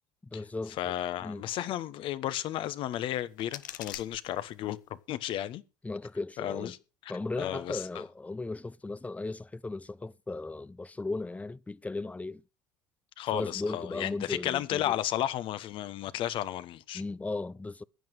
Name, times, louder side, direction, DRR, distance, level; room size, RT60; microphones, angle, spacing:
voice 1, 0.2-0.9 1.2-1.4 5.8-6.8 7.1-12.4 13.3-15.0 16.9-17.8, left 3 dB, 15° left, 0.7 m, -36 dB
voice 2, 0.8-4.8 5.1-5.6 6.4-6.7 7.4-7.8 13.2-17.0, left 12 dB, 60° left, 1.2 m, -33 dB
sound 1, 2.9-4.9, left 11 dB, 85° left, 0.8 m, -46 dB
16.0 x 10.5 x 4.9 m
hypercardioid pair, 60°, 10 cm